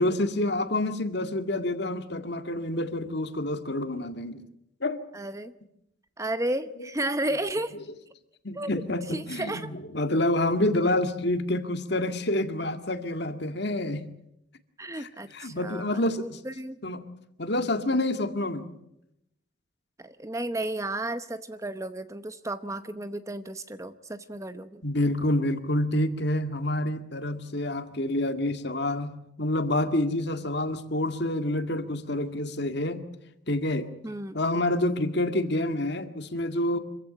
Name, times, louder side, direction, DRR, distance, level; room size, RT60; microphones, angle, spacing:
voice 1, 0.0-4.4 4.8-5.0 6.8-6.9 8.4-14.0 14.9-16.4 16.8-17.0 17.4-18.7 24.8-33.0 33.5-33.9 34.3-36.8, left 1 dB, 55° left, 8 dB, 2.0 m, -28 dB
voice 2, 5.1-5.5 6.2-7.7 8.5-8.7 9.1-9.7 14.8-16.8 20.0-24.8 34.0-34.3, right 1 dB, 15° right, 11 dB, 0.8 m, -33 dB
26.0 x 15.5 x 8.9 m, 0.82 s
head